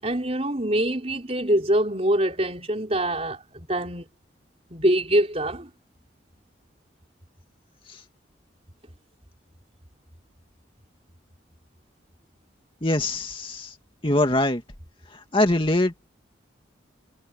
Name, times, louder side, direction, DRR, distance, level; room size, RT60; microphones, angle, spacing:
voice 1, 0.0-4.1 4.7-5.7, right 1 dB, 30° right, 4.7 m, -24 dB
voice 2, 12.8-13.7 14.0-14.6 15.1-16.1, left 1 dB, 25° left, 2.4 m, -23 dB
head